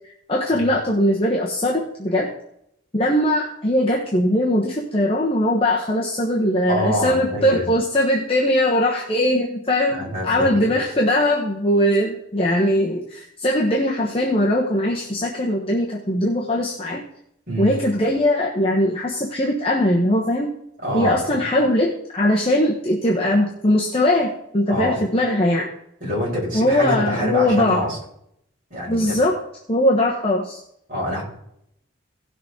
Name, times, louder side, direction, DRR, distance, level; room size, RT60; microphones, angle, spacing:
voice 1, 0.3-2.3 2.9-17.0 17.6-20.5 20.9-25.7 26.5-27.8 28.9-29.4 29.7-30.6, left 1 dB, 30° left, -2 dB, 1.1 m, -20 dB
voice 2, 6.7-7.7 9.9-10.7 17.5-17.7 20.8-21.4 24.7-25.0 26.0-28.0 28.7-29.1 30.9-31.2, equal, 40° right, -5 dB, 5.4 m, -25 dB
17.0 x 6.6 x 3.8 m, 0.75 s
head